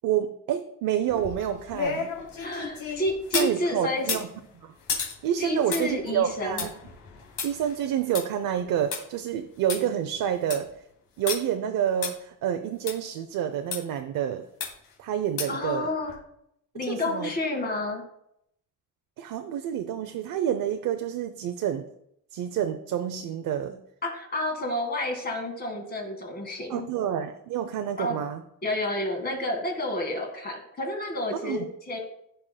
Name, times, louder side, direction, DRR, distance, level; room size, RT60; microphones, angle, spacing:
voice 1, 0.0-2.1 2.9-3.0 3.3-4.3 4.6-4.7 5.2-6.7 7.4-10.7 11.2-14.5 15.0-15.9 16.9-17.3 19.2-21.9 22.3-23.8 26.7-28.4 31.4-31.7, right 10 dB, 85° right, 7 dB, 0.7 m, -28 dB
sound 1, 1.1-3.6 4.0-9.0 9.4-9.5 9.7-9.8 10.2-10.7 11.3-11.4 12.0-12.1 12.9-13.0 13.7-13.8 14.6-14.9 15.4-15.7 16.1-16.2, left 6 dB, 80° left, 2.7 m, -33 dB
voice 2, 2.4-4.2 5.4-6.7 15.5-16.2 16.7-18.0 24.0-26.9 28.0-28.2 28.6-32.0, left 1 dB, 30° left, 2 dB, 2.0 m, -30 dB
15.0 x 5.7 x 2.2 m, 0.76 s
cardioid pair, 150°, 33 cm